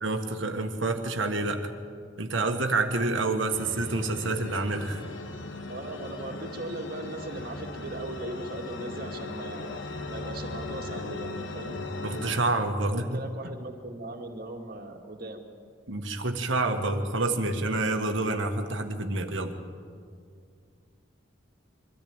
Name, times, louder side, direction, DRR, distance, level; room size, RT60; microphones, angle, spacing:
voice 1, 0.0-1.7 2.2-5.0 12.0-13.2 15.9-19.6, right 2 dB, 70° right, 5 dB, 1.6 m, -28 dB
sound 1, 3.5-12.4, left 2 dB, 70° left, 1.4 m, -38 dB
voice 2, 5.7-11.8 12.9-15.4, right 2 dB, 50° right, 3 dB, 2.1 m, -39 dB
23.5 x 14.0 x 8.9 m, 2.2 s
head